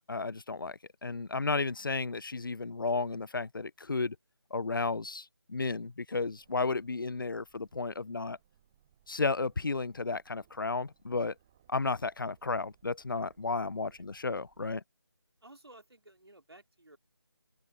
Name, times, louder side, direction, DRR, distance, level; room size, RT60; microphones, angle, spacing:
voice 1, 0.1-4.2 4.5-8.4 9.1-11.3 11.7-14.8, left 3 dB, 50° left, 0.4 m, -33 dB
Aircraft, 6.2-14.7, right 11 dB, 5° right, 0.5 m, -68 dB
voice 2, 15.4-17.0, right 1 dB, 70° right, 2.8 m, -56 dB
open air
figure-of-eight pair, 160°, 14 cm